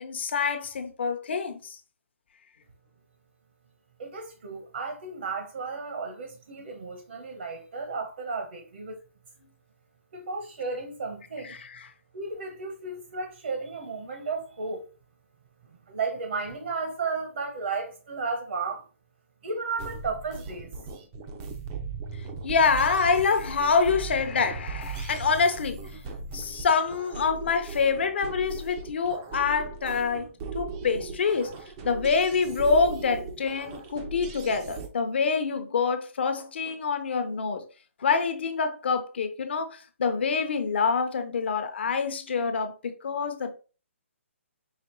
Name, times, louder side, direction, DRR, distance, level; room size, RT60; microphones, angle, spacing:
voice 1, 0.0-1.8 11.4-11.9 22.4-25.8 26.3-30.3 30.5-31.5 31.8-37.6 38.0-43.5, left 5 dB, 55° left, 0.7 m, -26 dB
voice 2, 4.0-9.0 10.1-11.6 12.1-14.9 15.9-18.8 19.4-20.7, right 4 dB, 60° right, 1.0 m, -34 dB
sound 1, 19.8-34.9, right 4 dB, 20° right, 0.4 m, -38 dB
5.0 x 2.9 x 2.9 m
hypercardioid pair, 165°, 7 cm